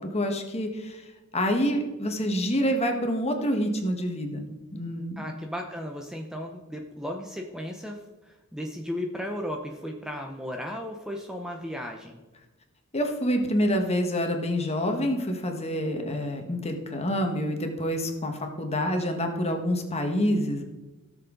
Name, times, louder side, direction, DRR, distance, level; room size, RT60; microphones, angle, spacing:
voice 1, 0.1-1.0 1.3-4.4 4.7-5.2 12.9-20.6, equal, 30° left, 4 dB, 1.5 m, -27 dB
voice 2, 5.2-12.2, equal, 5° right, 2 dB, 0.7 m, -35 dB
17.0 x 6.9 x 3.9 m, 1.1 s
head